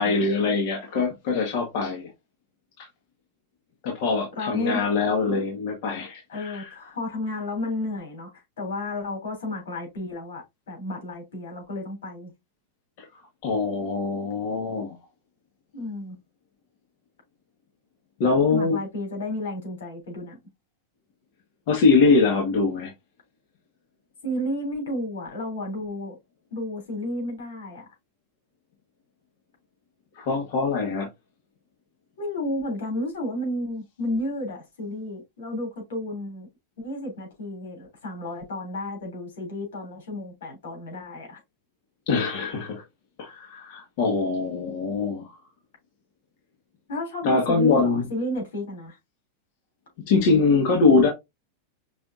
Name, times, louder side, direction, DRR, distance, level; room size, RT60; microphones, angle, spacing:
voice 1, 0.0-2.1 2.8-2.9 3.8-6.7 13.4-15.0 18.2-18.8 21.7-22.9 30.2-31.1 42.1-42.8 43.2-45.3 47.2-48.0 50.1-51.1, left 4 dB, 55° left, 1.6 m, -23 dB
voice 2, 4.3-4.8 6.3-8.3 8.6-12.3 15.7-16.2 18.5-20.4 24.2-26.2 26.5-27.9 32.2-36.5 36.8-41.4 46.9-49.0, left 1 dB, 90° left, 3.5 m, -32 dB
5.6 x 3.5 x 2.7 m
supercardioid pair, 150°, 0 cm